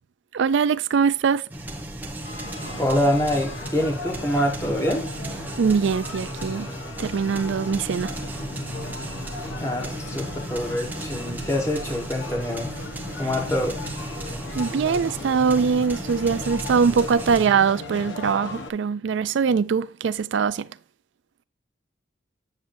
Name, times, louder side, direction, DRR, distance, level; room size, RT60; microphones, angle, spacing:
voice 1, 0.3-1.4 5.6-6.7 7.0-8.1 14.5-20.7, right 6 dB, 65° right, 0.4 m, -22 dB
sound 1, 1.5-17.5, right 1 dB, 10° right, 1.0 m, -35 dB
sound 2, 2.2-18.7, left 2 dB, 65° left, 1.2 m, -37 dB
voice 2, 2.8-5.1 9.6-12.7 13.2-13.8, left 1 dB, 15° left, 1.4 m, -25 dB
8.8 x 7.3 x 2.6 m
head